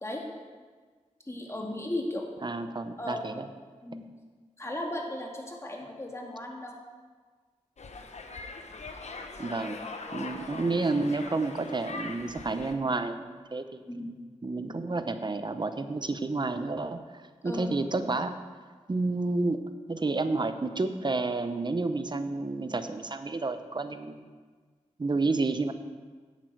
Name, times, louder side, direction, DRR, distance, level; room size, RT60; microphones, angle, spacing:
voice 1, 1.3-2.3 3.0-3.2 3.8-4.1 4.6-6.8 13.9-14.1 14.6-14.8 17.4-17.7, left 1 dB, 20° left, 0 dB, 2.0 m, -36 dB
voice 2, 2.4-3.5 9.4-9.8 10.1-13.8 14.4-18.4 18.9-19.6 19.9-24.3 25.0-25.7, right 3 dB, 35° right, 9 dB, 0.7 m, -30 dB
sound 1, 7.8-12.7, left 3 dB, 65° left, 0.9 m, -41 dB
10.5 x 8.4 x 4.7 m, 1.5 s
cardioid pair, 60°, 12 cm